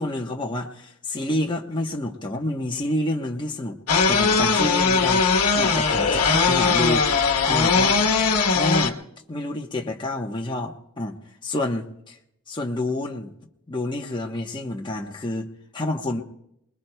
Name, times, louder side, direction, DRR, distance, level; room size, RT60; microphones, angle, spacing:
voice 1, 0.0-3.8 4.1-7.1 7.4-8.0 8.5-9.0 9.3-12.2 12.5-13.3 13.7-16.2, left 1 dB, 20° left, 0 dB, 1.0 m, -28 dB
sound 1, 3.9-8.9, left 5 dB, 90° left, 1.2 m, -20 dB
28.0 x 21.0 x 2.3 m, 0.77 s
head